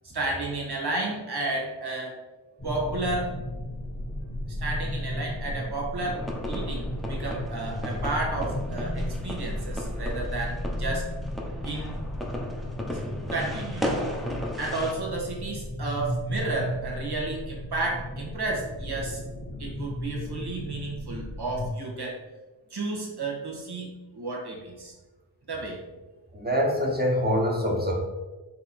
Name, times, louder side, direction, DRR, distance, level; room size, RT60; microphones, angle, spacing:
voice 1, 0.1-2.2 2.6-3.3 4.6-6.2 6.5-11.1 11.6-12.0 13.3-13.8 14.6-19.2 19.6-22.2 22.7-24.9 25.5-25.8, right 2 dB, 60° right, -2 dB, 1.3 m, -32 dB
sound 1, 2.6-21.7, left 1 dB, 25° left, 1.0 m, -34 dB
sound 2, 6.0-14.9, equal, ahead, 0.8 m, -36 dB
voice 2, 26.3-27.9, equal, 20° right, -1 dB, 1.2 m, -24 dB
4.2 x 2.9 x 4.2 m, 1.2 s
cardioid pair, 50°, 44 cm